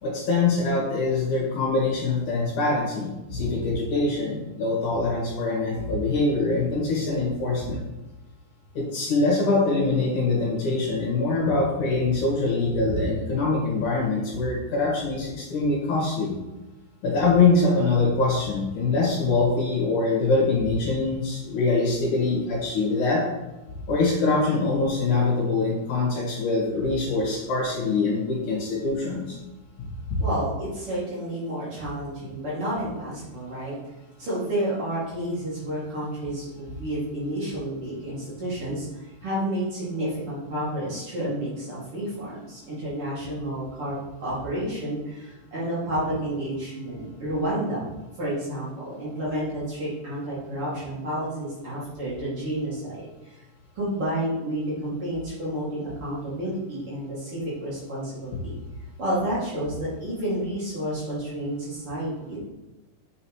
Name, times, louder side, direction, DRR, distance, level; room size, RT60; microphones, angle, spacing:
voice 1, 0.0-7.8 8.7-16.3 17.0-23.2 23.9-29.4 30.1-30.2, left 3 dB, 65° left, -3 dB, 3.0 m, -24 dB
voice 2, 30.2-33.7 34.2-47.9 48.2-53.4 53.7-58.5 59.0-62.4, right 1 dB, 45° right, -9 dB, 2.9 m, -30 dB
7.6 x 6.5 x 3.0 m, 1.0 s
omnidirectional pair, 3.9 m